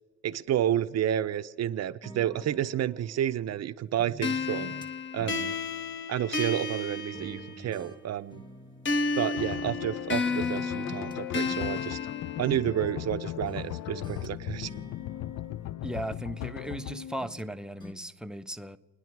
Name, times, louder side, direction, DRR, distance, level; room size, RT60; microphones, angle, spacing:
voice 1, 0.2-4.7 5.1-5.6 6.1-8.4 9.2-12.0 12.4-14.7, right 11 dB, 60° right, 11 dB, 0.6 m, -30 dB
sound 1, 2.0-3.6 4.0-6.8 7.1-10.0 10.3-11.2 11.5-13.1 13.4-16.3 16.6-17.5 17.8-17.9, right 1 dB, 15° left, 1.6 m, -48 dB
sound 2, 4.2-7.8 8.9-12.9, left 4 dB, 40° left, 1.2 m, -32 dB
sound 3, 9.4-17.4, left 14 dB, 60° left, 0.4 m, -38 dB
voice 2, 15.8-18.8, right 1 dB, ahead, 9 dB, 0.6 m, -37 dB
29.5 x 10.5 x 4.6 m, 1.5 s
cardioid pair, 90°, 30 cm